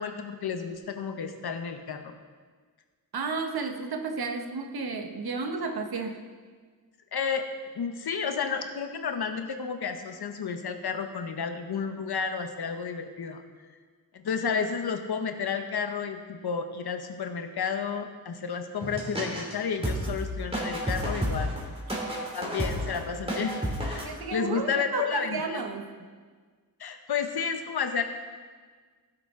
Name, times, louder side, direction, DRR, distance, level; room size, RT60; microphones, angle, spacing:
voice 1, 0.0-2.2 7.1-7.5 7.7-13.4 14.1-21.6 22.3-25.6 26.8-28.0, left 6 dB, 85° left, 7 dB, 0.9 m, -31 dB
voice 2, 3.1-6.2 24.0-26.1, right 4 dB, 80° right, 6 dB, 1.0 m, -32 dB
sound 1, 18.8-19.5 19.8-24.0, equal, 15° right, 2.6 m, -31 dB
15.0 x 7.7 x 3.7 m, 1.5 s
wide cardioid pair, 75°, 37 cm